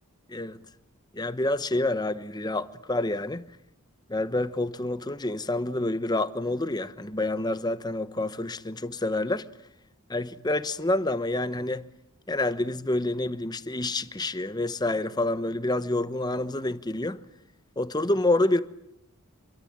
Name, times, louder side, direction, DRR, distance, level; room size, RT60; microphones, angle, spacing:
voice 1, 1.1-3.4 4.1-9.4 10.1-11.9 12.3-17.2 17.8-18.6, left 2 dB, 20° left, 1.0 m, -28 dB
27.0 x 23.0 x 8.9 m
head